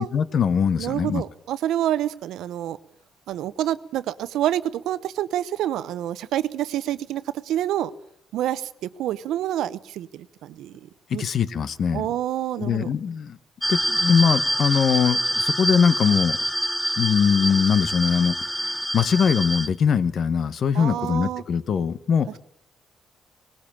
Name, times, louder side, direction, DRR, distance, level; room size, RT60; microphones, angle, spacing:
voice 1, 0.0-1.2 11.2-12.1 12.6-13.4 13.7-16.4 17.0-22.4, left 7 dB, 55° left, 15 dB, 1.2 m, -22 dB
voice 2, 0.8-2.8 3.3-7.9 8.3-11.3 11.9-12.9 20.7-21.4, right 12 dB, 85° right, 15 dB, 0.9 m, -27 dB
sound 1, 13.6-19.7, right 1 dB, ahead, 1.3 m, -26 dB
19.5 x 18.5 x 8.8 m, 0.70 s
cardioid pair, 90°, 0 cm